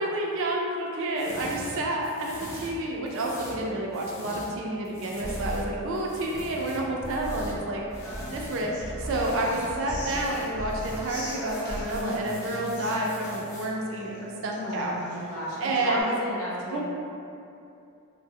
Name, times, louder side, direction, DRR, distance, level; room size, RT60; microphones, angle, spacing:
voice 1, 0.0-14.9 15.6-16.0 16.7-16.8, right 1 dB, 60° right, -2 dB, 0.4 m, -29 dB
sound 1, 1.2-4.6 4.8-8.7 9.0-9.7 10.0-13.7, equal, 15° left, 0.4 m, -44 dB
sound 2, 5.2-6.7 7.0-10.3 10.5-11.1 11.5-12.0, equal, 85° right, 0.7 m, -37 dB
Human voice / Acoustic guitar, 8.0-16.0, equal, 50° left, 0.7 m, -41 dB
voice 2, 14.6-16.8, equal, 80° left, -6 dB, 0.6 m, -33 dB
2.0 x 2.0 x 3.5 m, 2.6 s
head